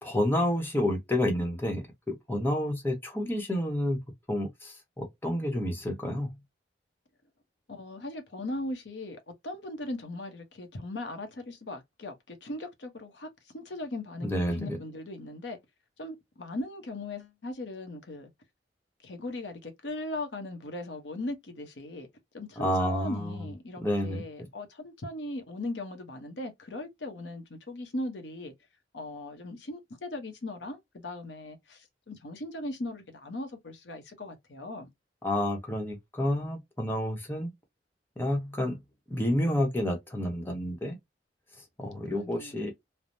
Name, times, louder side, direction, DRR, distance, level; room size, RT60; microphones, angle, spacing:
voice 1, 0.0-4.0 4.3-6.4 14.2-14.8 22.6-23.4 23.8-24.2 35.2-37.5 38.2-38.8 39.1-41.0 41.8-42.7, left 1 dB, 15° left, 0.9 m, -29 dB
voice 2, 7.7-13.3 13.5-15.6 16.0-18.3 19.0-22.1 22.3-28.5 28.9-34.9 42.1-42.7, left 2 dB, 85° left, 0.8 m, -38 dB
3.2 x 2.0 x 2.6 m
head